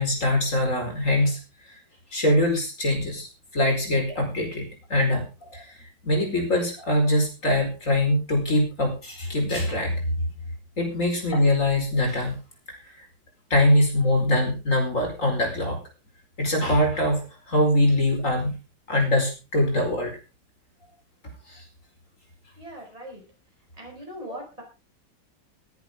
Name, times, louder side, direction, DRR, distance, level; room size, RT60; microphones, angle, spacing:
voice 1, 0.0-1.4 2.1-3.3 3.5-5.6 6.0-10.0 10.8-12.3 12.7-12.8 13.5-15.8 16.4-17.2 17.5-18.5 18.9-20.1 21.5-21.6, left 1 dB, 40° left, 2 dB, 5.2 m, -23 dB
voice 2, 22.6-23.2 23.8-24.6, equal, 20° right, 0 dB, 5.4 m, -40 dB
20.5 x 10.5 x 3.7 m, 0.31 s
omnidirectional pair, 2.0 m